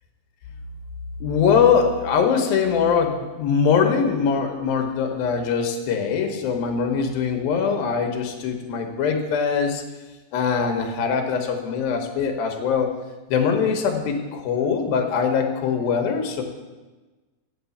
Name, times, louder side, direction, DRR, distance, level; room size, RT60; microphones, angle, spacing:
voice 1, 1.2-9.8 10.3-12.9 13.3-16.4, left 6 dB, 85° left, 4 dB, 2.8 m, -22 dB
8.3 x 6.8 x 6.9 m, 1.2 s
omnidirectional pair, 4.1 m